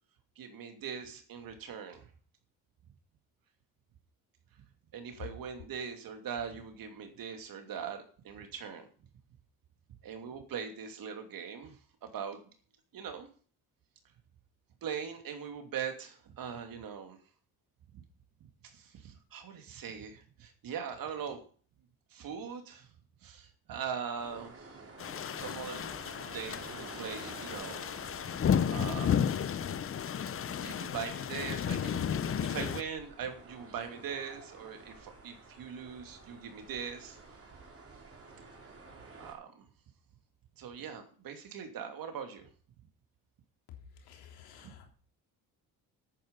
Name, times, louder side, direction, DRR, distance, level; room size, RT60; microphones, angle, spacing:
voice 1, 0.4-2.1 4.9-8.9 10.0-12.4 12.9-13.3 14.8-17.2 18.6-21.4 22.1-22.9 23.2-24.8 25.4-25.8 26.3-28.4 28.7-29.6 30.3-30.4 30.6-32.1 32.4-37.2 39.2-39.6 40.6-42.5 44.6-44.7, right 7 dB, 65° right, 5 dB, 2.9 m, -41 dB
sound 1, 24.2-39.3, right 3 dB, 40° right, 4.2 m, -52 dB
sound 2, 25.0-32.8, left 8 dB, 35° left, 0.7 m, -33 dB
voice 2, 44.1-44.9, left 9 dB, 90° left, 2 dB, 3.4 m, -54 dB
10.5 x 9.3 x 5.5 m, 0.42 s
cardioid pair, 85°, 37 cm